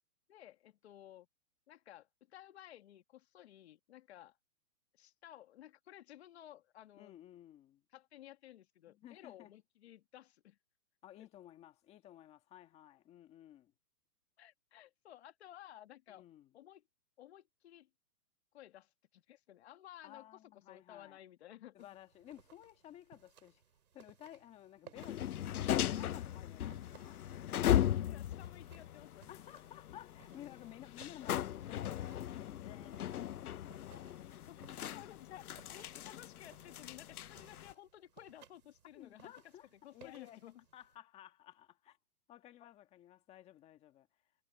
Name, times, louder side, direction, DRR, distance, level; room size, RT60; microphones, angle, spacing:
voice 1, 0.3-1.3 1.7-4.4 4.9-7.2 7.9-10.6 11.2-11.3 14.4-16.2 16.5-16.8 17.2-17.9 18.5-20.2 20.5-21.9 28.1-29.3 34.3-34.6 34.9-39.3 39.8-40.6 42.6-42.7, left 12 dB, 45° left, 1.9 m, -56 dB
voice 2, 7.0-7.8 8.9-9.5 11.0-13.7 16.1-16.5 20.0-21.2 21.7-23.6 23.9-27.2 29.3-33.6 34.4-34.5 35.5-35.6 38.9-40.4 40.7-42.0 42.3-44.1, left 12 dB, 15° left, 1.7 m, -55 dB
sound 1, 21.8-41.0, right 7 dB, 85° right, 7.6 m, -64 dB
sound 2, 25.0-37.7, left 11 dB, 75° left, 0.8 m, -38 dB
hypercardioid pair, 165°, 45 cm